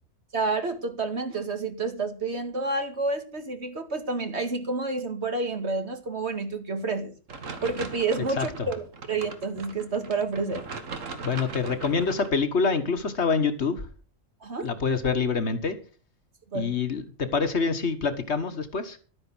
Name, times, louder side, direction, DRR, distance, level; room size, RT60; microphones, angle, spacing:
voice 1, 0.3-7.1 7.6-10.6 14.4-14.7 16.5-16.7, right 3 dB, 60° right, 2.2 m, -29 dB
sound 1, 7.3-12.3, right 4 dB, 85° right, 1.9 m, -39 dB
voice 2, 11.2-13.9 14.6-15.8 16.5-19.0, left 5 dB, 60° left, 1.8 m, -26 dB
12.5 x 9.4 x 6.2 m
omnidirectional pair, 1.3 m